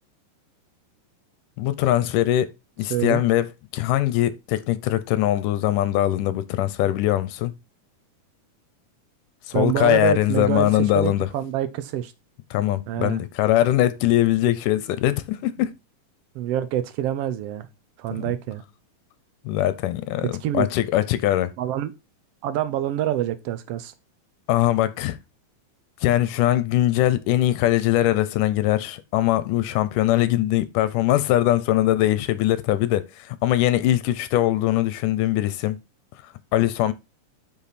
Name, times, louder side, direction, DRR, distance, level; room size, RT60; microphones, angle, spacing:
voice 1, 1.6-2.5 2.8-7.5 9.5-11.3 12.5-15.7 18.1-18.3 19.5-21.5 24.5-25.2 26.0-35.8 36.2-36.9, left 13 dB, 80° left, 2.2 m, -21 dB
voice 2, 2.9-3.2 9.5-10.7 10.9-12.1 12.9-13.2 16.3-17.7 18.0-18.6 20.4-20.7 21.6-21.9 22.4-23.9, right 12 dB, 80° right, 1.4 m, -26 dB
8.8 x 5.5 x 4.1 m
omnidirectional pair, 3.8 m